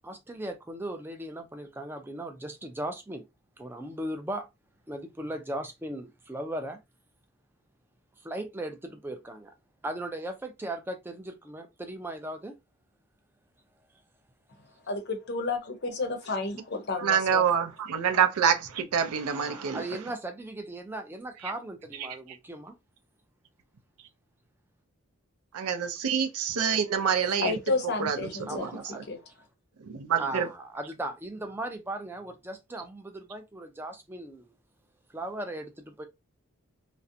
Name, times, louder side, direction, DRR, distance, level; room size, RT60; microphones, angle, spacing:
voice 1, 0.0-3.2 3.6-4.5 4.9-6.8 8.2-9.5 9.8-12.6 19.3-22.8 28.5-29.1 30.2-34.4 35.1-36.1, right 1 dB, 10° right, 0.3 m, -37 dB
voice 2, 14.9-17.4 27.4-28.7 29.1-29.2, left 3 dB, 50° left, 0.6 m, -31 dB
voice 3, 17.0-19.8 21.4-21.5 22.0-22.4 25.5-27.5 27.8-29.0 29.8-30.5, right 7 dB, 85° right, 0.5 m, -27 dB
2.4 x 2.0 x 2.6 m
head